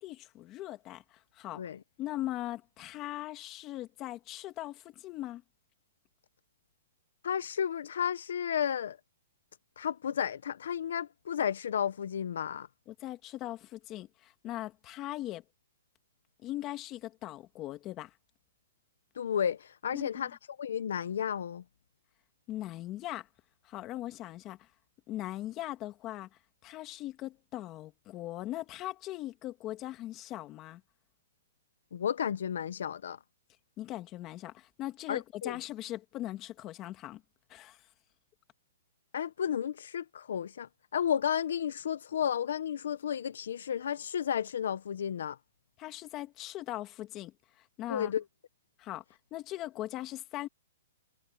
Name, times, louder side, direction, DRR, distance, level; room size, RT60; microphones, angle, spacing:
voice 1, 0.0-1.6 2.0-5.4 12.9-15.4 16.4-18.1 19.9-20.3 22.5-23.3 23.6-24.7 25.1-26.3 26.6-30.8 33.8-37.2 37.5-37.8 45.8-48.1 48.8-49.0 49.3-50.5, left 15 dB, 25° left, 2.1 m, -40 dB
voice 2, 7.2-9.0 9.8-12.7 19.2-20.3 20.6-21.6 31.9-33.2 35.1-35.6 39.1-45.4 47.9-48.2, left 8 dB, 75° left, 1.0 m, -32 dB
hypercardioid pair, 160°, 0 cm